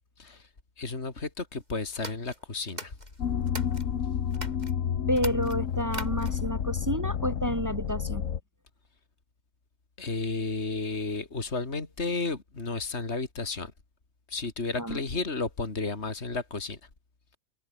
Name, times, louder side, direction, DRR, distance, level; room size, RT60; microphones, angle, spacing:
voice 1, 0.8-2.9 10.0-13.7 14.3-16.8, left 3 dB, 55° left, 3.2 m, -32 dB
sound 1, 1.9-3.9 4.3-4.7 5.1-6.5, right 1 dB, 30° right, 5.2 m, -42 dB
sound 2, 3.2-8.4, left 8 dB, 75° left, 1.5 m, -30 dB
voice 2, 5.1-8.2 14.8-15.0, equal, 15° right, 1.4 m, -30 dB
omnidirectional pair, 1.3 m